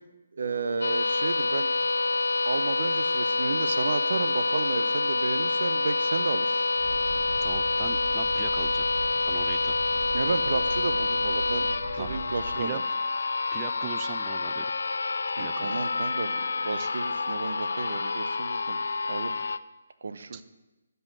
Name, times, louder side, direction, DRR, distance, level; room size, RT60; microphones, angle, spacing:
voice 1, 0.4-1.7 2.4-6.6 10.1-11.7 12.0-12.8 15.4-18.8 19.1-19.4 20.0-20.4, right 4 dB, 65° right, 11 dB, 0.8 m, -32 dB
sound 1, 0.8-19.6, left 3 dB, 75° left, 0.5 m, -27 dB
sound 2, 6.7-12.5, right 2 dB, 40° right, 4.8 m, -40 dB
voice 2, 7.4-8.9 9.3-9.7 12.0-12.2 12.6-12.8 13.5-14.7 15.4-15.8 16.7-16.9 20.3-20.4, right 11 dB, 25° right, 11 dB, 0.5 m, -39 dB
11.5 x 5.5 x 7.6 m, 1.1 s
hypercardioid pair, 155°, 0 cm